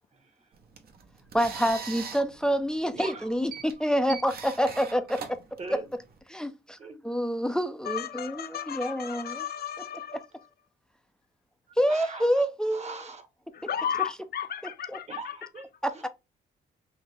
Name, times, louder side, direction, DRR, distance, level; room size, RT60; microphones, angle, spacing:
voice 1, 0.1-0.5 2.9-3.3 3.8-3.9 5.6-5.9 6.8-7.0 11.9-13.3 15.1-16.1, right 4 dB, 35° right, 1.3 m, -42 dB
sound 1, 0.5-6.2, right 6 dB, 50° right, 1.0 m, -42 dB
voice 2, 1.3-5.4 6.3-6.8 7.0-9.4 9.8-9.9 10.1-10.2 11.8-12.9 14.9-15.0 15.8-16.1, equal, 5° left, 0.5 m, -27 dB
voice 3, 7.9-10.2 13.5-15.4, left 9 dB, 50° left, 0.6 m, -34 dB
6.0 x 2.1 x 3.3 m
cardioid pair, 90°, 20 cm